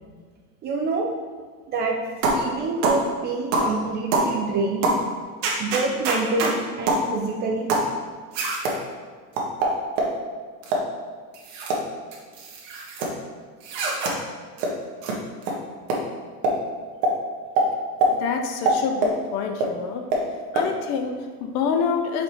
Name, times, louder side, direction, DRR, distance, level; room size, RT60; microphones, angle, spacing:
voice 1, 0.6-1.1 1.7-2.0 2.3-4.9 5.6-7.7, right 3 dB, 25° right, 1 dB, 0.4 m, -26 dB
sound 1, 2.2-2.5 2.8-3.0 3.5-3.7 4.1-4.3 4.8-5.0 5.4-6.5 6.9-7.1 7.7-7.9 8.3-8.8 9.4-10.1 10.6-10.9 11.3-11.8 12.1-13.1 13.6-14.1 14.6-14.7 15.0-15.2 15.4-15.5 15.9-16.0 16.4-16.6 17.0-17.1 17.6-17.7 18.0-18.1 18.7-19.2 19.6-19.7 20.1-20.2 20.6-20.7, right 2 dB, 55° right, 1.5 m, -23 dB
voice 2, 18.1-20.1 20.5-22.2, left 6 dB, 40° left, 6 dB, 0.6 m, -27 dB
5.1 x 4.4 x 4.8 m, 1.5 s
supercardioid pair, 135°, 45 cm